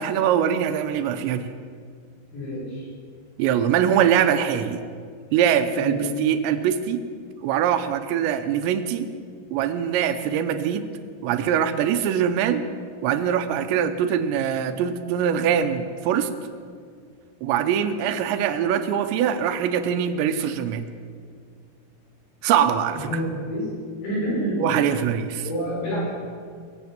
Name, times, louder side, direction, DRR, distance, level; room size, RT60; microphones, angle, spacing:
voice 1, 0.0-1.5 3.4-4.8 5.3-7.0 7.4-9.1 9.5-10.9 11.2-12.6 13.0-16.3 17.4-20.9 22.4-23.1 24.6-25.4, right 9 dB, 80° right, 9 dB, 3.0 m, -23 dB
voice 2, 2.3-2.9 5.7-6.1 22.9-23.7 24.0-24.8 25.4-26.1, right 1 dB, 70° left, -5 dB, 7.2 m, -28 dB
21.5 x 8.0 x 7.4 m, 2.1 s
omnidirectional pair, 5.1 m